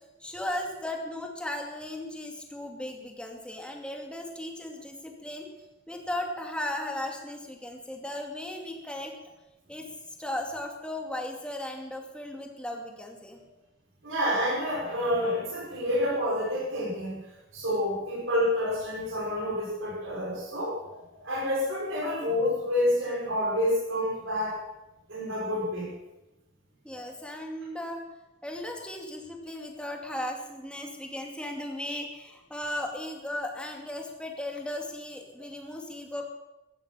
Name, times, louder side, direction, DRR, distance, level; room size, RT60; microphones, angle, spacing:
voice 1, 0.2-5.5 5.9-9.1 9.7-9.9 10.2-13.4 26.8-28.0 28.4-36.2, left 1 dB, 5° left, 2 dB, 2.4 m, -36 dB
voice 2, 14.0-17.2 17.5-24.6 25.1-25.9 27.1-27.3, left 1 dB, 70° right, -4 dB, 5.4 m, -28 dB
15.0 x 15.0 x 5.8 m, 1.0 s
head